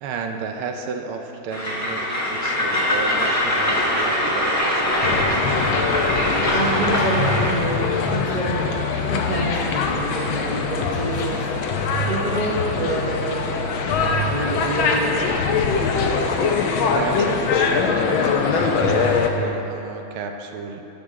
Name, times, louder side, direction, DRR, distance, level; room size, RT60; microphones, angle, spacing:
voice 1, 0.0-5.4 16.8-18.1 18.5-20.8, right 5 dB, 80° right, 4 dB, 1.5 m, -32 dB
Train, 1.5-7.6, left 1 dB, 10° left, 0.8 m, -22 dB
sound 1, 5.0-19.3, left 4 dB, 70° left, 1.5 m, -22 dB
voice 2, 6.5-11.5 12.1-13.4 14.0-15.5, right 1 dB, 60° right, -7 dB, 0.4 m, -27 dB
12.0 x 7.5 x 3.6 m, 2.9 s
omnidirectional pair, 2.4 m